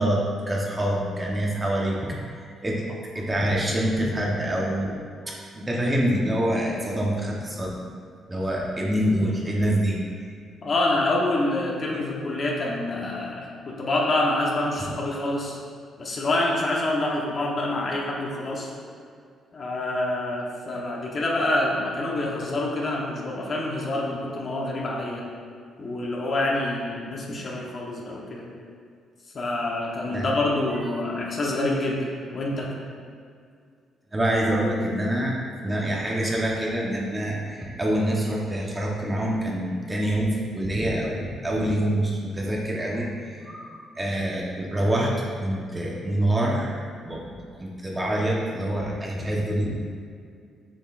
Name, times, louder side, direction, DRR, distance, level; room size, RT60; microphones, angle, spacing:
voice 1, 0.0-2.2 2.6-2.8 3.1-5.0 5.3-7.7 8.3-10.3 30.0-30.3 34.1-45.1 45.4-49.7, right 1 dB, 20° right, -3 dB, 1.1 m, -26 dB
voice 2, 10.6-15.6 16.0-18.7 19.5-25.3 25.8-28.5 29.3-32.7, left 2 dB, 45° left, -2 dB, 1.1 m, -27 dB
7.2 x 5.3 x 2.5 m, 2.2 s
cardioid pair, 90°, 0 cm